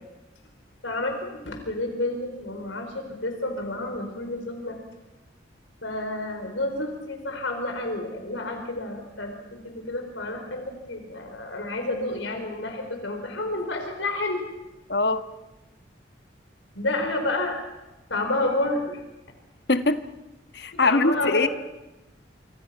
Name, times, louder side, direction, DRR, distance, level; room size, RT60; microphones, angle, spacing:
voice 1, 0.8-1.1 1.4-4.8 5.8-14.4 16.7-17.6 18.1-19.0 20.7-21.5, left 2 dB, 90° left, 5 dB, 4.6 m, -30 dB
voice 2, 14.9-15.2 19.7-20.0 20.5-21.5, left 2 dB, 60° left, 10 dB, 1.4 m, -22 dB
26.5 x 25.5 x 5.9 m, 1.0 s
head